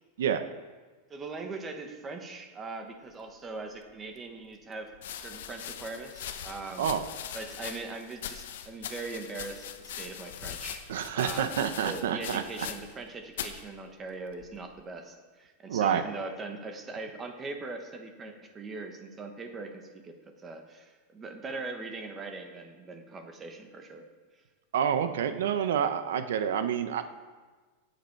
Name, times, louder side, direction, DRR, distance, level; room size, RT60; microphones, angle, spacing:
voice 1, 1.1-6.9 7.3-10.9 11.1-11.6 11.8-24.1 24.3-24.4, right 3 dB, 15° right, 5 dB, 1.1 m, -41 dB
sound 1, 3.9-4.0 4.9-13.1 13.3-13.6 14.4-14.8, left 9 dB, 65° left, 1.0 m, -41 dB
voice 2, 10.9-12.7 15.7-16.0 24.7-27.0, right 8 dB, 75° right, 10 dB, 0.9 m, -28 dB
17.0 x 8.1 x 4.6 m, 1.4 s
supercardioid pair, 180°, 0 cm